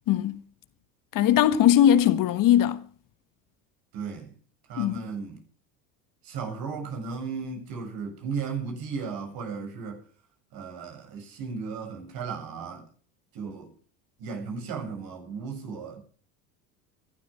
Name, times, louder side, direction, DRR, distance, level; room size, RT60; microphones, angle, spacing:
voice 1, 0.1-0.4 1.1-2.8 4.8-5.1, left 10 dB, 50° left, 1.5 m, -20 dB
voice 2, 3.9-4.3 4.7-5.4 6.2-10.0 10.5-12.8 13.3-13.7 14.2-16.0, right 5 dB, 60° right, 7.5 m, -35 dB
14.0 x 12.0 x 7.5 m
hypercardioid pair, 85°, 41 cm